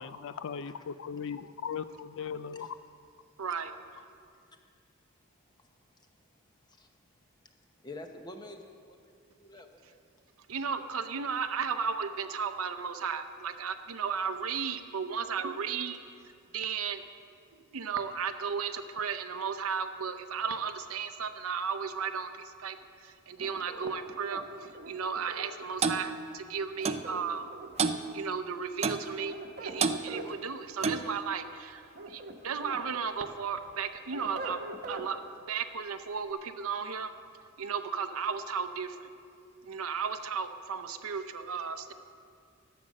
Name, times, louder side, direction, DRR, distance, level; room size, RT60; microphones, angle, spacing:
voice 1, 0.0-2.7, left 7 dB, 60° left, 14 dB, 0.4 m, -38 dB
voice 2, 3.4-3.7 10.5-16.0 16.5-17.0 17.7-22.8 23.0-27.5 28.1-34.6 34.9-35.2 35.5-37.1 37.6-39.1 39.6-41.9, right 6 dB, 75° right, 9 dB, 0.7 m, -34 dB
voice 3, 7.8-9.1 9.4-10.1, left 2 dB, 20° left, 5 dB, 0.8 m, -47 dB
sound 1, 23.4-25.5 26.8-27.9 29.1-30.3 31.7-32.8 33.3-35.1, right 2 dB, 45° right, 1.0 m, -43 dB
Clock, 25.8-26.0 26.8-27.1 27.8-28.0 28.8-29.1 29.8-30.0 30.8-31.1, right 5 dB, 30° right, 0.4 m, -28 dB
12.5 x 7.7 x 6.4 m, 2.3 s
head